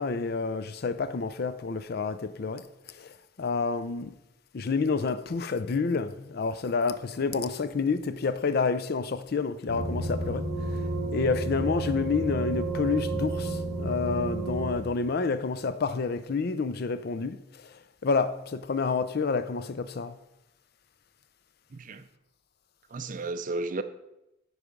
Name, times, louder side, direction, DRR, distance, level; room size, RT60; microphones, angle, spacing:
voice 1, 0.0-2.6 3.4-4.1 4.5-10.5 11.1-17.4 18.0-20.1, left 4 dB, 55° left, 0.5 m, -29 dB
sound 1, 9.7-14.7, right 2 dB, 15° left, 2.9 m, -31 dB
voice 2, 21.7-22.0 22.9-23.8, right 3 dB, 45° right, 0.5 m, -33 dB
9.7 x 4.9 x 5.1 m
head